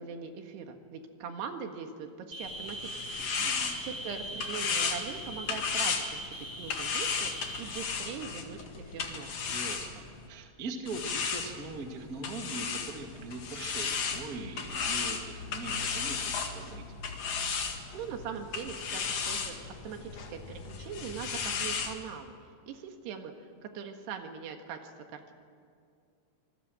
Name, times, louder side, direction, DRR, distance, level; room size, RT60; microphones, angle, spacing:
voice 1, 0.0-3.1 3.5-6.2 6.6-9.4 17.9-19.6 19.8-22.3 22.6-23.3 23.6-25.3, right 6 dB, 70° right, 5 dB, 3.7 m, -41 dB
sound 1, 2.3-7.8, right 1 dB, 5° right, 2.6 m, -41 dB
sound 2, 2.4-10.3 10.9-21.9, left 5 dB, 50° left, 2.4 m, -35 dB
voice 2, 3.4-3.9 9.5-17.0, right 3 dB, 45° right, 4 dB, 1.2 m, -41 dB
27.0 x 20.0 x 7.7 m, 2.3 s
omnidirectional pair, 5.1 m